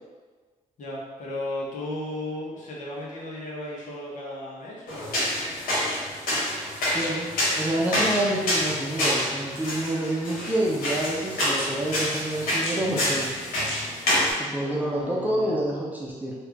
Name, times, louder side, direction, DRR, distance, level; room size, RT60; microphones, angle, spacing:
voice 1, 0.8-5.4 14.6-15.6, left 1 dB, 60° left, -5 dB, 1.0 m, -35 dB
sound 1, 4.9-14.3, left 1 dB, 80° left, 1.2 m, -27 dB
voice 2, 6.9-7.3 7.5-13.3 14.4-16.3, right 1 dB, 10° right, -4 dB, 0.7 m, -27 dB
3.2 x 2.5 x 3.4 m, 1.4 s
cardioid pair, 85°, 15 cm